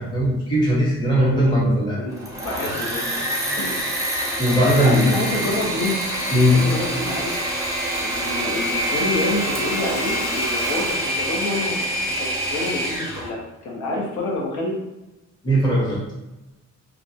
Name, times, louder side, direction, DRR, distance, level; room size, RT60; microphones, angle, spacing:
voice 1, 0.0-2.0 4.4-5.0 6.3-6.6 15.4-16.0, equal, 15° left, -7 dB, 0.8 m, -18 dB
voice 2, 2.0-3.2 3.6-4.3 4.6-6.0 6.5-7.3 8.0-14.8, left 2 dB, 70° left, -2 dB, 0.6 m, -28 dB
Engine / Mechanisms, 2.1-13.3, right 1 dB, 10° right, 0.3 m, -26 dB
2.3 x 2.0 x 2.6 m, 1.0 s
cardioid pair, 150°, 30 cm